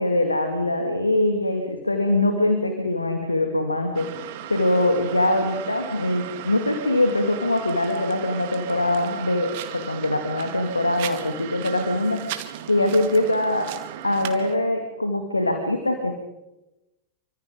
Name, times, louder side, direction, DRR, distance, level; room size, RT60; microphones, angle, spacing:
voice 1, 0.0-4.1 4.5-12.2 12.7-13.7 14.0-16.2, left 1 dB, 85° left, 5 dB, 2.4 m, -23 dB
sound 1, 3.9-14.6, right 11 dB, 50° right, 2.1 m, -36 dB
29.0 x 25.0 x 3.9 m, 0.99 s
figure-of-eight pair, 90°, 0 cm